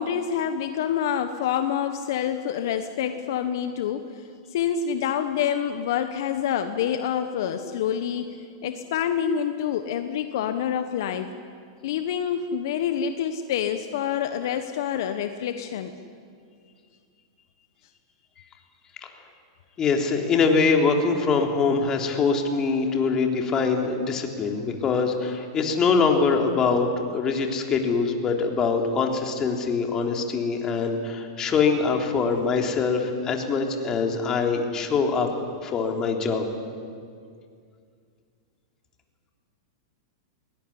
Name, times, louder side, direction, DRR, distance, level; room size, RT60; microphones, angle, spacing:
voice 1, 0.0-4.2 4.5-11.3 11.8-15.9, left 8 dB, 65° left, 8 dB, 1.3 m, -27 dB
voice 2, 19.8-35.3 35.6-36.5, left 4 dB, 30° left, 2 dB, 3.5 m, -23 dB
21.5 x 19.0 x 9.9 m, 2.2 s
hypercardioid pair, 115°, 2 cm